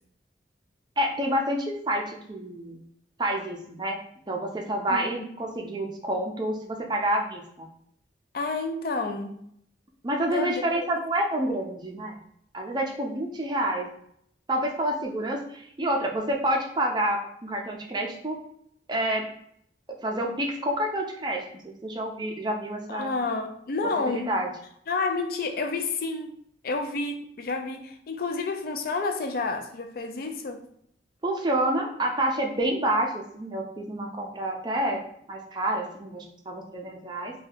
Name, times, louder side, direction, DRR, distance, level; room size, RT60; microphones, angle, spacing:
voice 1, 1.0-2.8 3.2-4.0 4.3-7.7 10.0-12.2 12.5-13.9 14.5-18.4 18.9-19.2 19.9-23.1 24.1-24.5 31.2-35.0 35.3-37.3, right 1 dB, 25° right, 0.5 m, -28 dB
voice 2, 4.9-5.4 8.3-9.4 10.3-10.9 22.9-24.3 24.9-26.3 26.6-30.6, left 3 dB, 55° left, 0.4 m, -30 dB
2.7 x 2.2 x 3.3 m
head